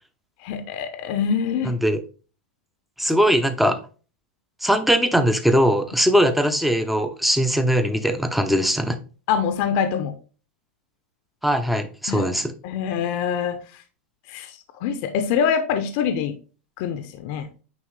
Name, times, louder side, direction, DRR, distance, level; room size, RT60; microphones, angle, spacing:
voice 1, 0.4-1.7 9.3-10.2 12.1-12.3 12.6-13.6 14.3-16.3 16.8-17.5, left 7 dB, 55° left, 8 dB, 0.8 m, -24 dB
voice 2, 1.6-2.0 3.0-3.8 4.6-9.0 11.4-12.5, equal, ahead, 8 dB, 0.7 m, -20 dB
9.2 x 3.1 x 3.2 m, 0.36 s
supercardioid pair, 135°, 7 cm